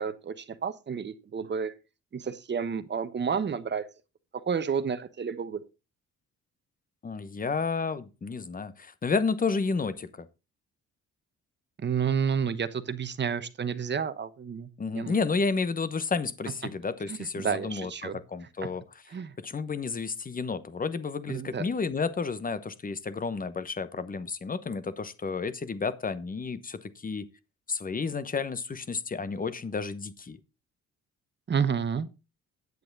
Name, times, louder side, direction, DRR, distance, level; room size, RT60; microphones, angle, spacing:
voice 1, 0.0-1.7 2.1-3.9 4.5-5.6 11.8-15.2 16.6-16.7 17.1-18.2 18.6-18.7 19.1-19.3 21.3-21.7 31.5-32.1, right 6 dB, 35° right, 1.0 m, -30 dB
voice 2, 7.0-10.3 14.8-18.8 19.4-27.3 27.7-30.4, left 4 dB, 30° left, 1.0 m, -31 dB
9.4 x 7.7 x 4.0 m
cardioid pair, 90°, 30 cm